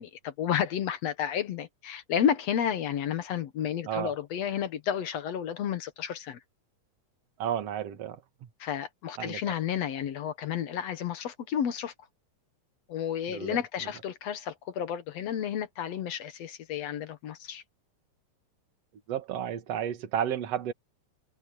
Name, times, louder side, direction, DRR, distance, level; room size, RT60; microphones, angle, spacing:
voice 1, 0.0-6.4 8.6-11.9 12.9-17.6, left 9 dB, 65° left, 2.2 m, -31 dB
voice 2, 7.4-8.2 9.2-9.4 13.3-13.6 19.1-20.7, right 10 dB, 60° right, 2.6 m, -32 dB
omnidirectional pair, 3.4 m